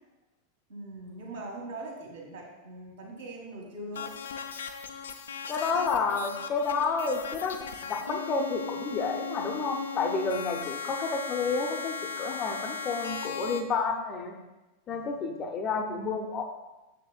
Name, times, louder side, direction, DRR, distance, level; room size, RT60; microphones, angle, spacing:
voice 1, 0.7-4.1 10.2-10.7 14.9-15.3, right 2 dB, 60° right, -2 dB, 1.7 m, -42 dB
sound 1, 3.9-13.6, left 5 dB, 65° left, 0.4 m, -37 dB
voice 2, 5.5-7.6 7.8-14.3 14.9-16.4, left 4 dB, 30° left, 4 dB, 0.6 m, -30 dB
6.9 x 6.5 x 2.3 m, 1.0 s
figure-of-eight pair, 90°, 0 cm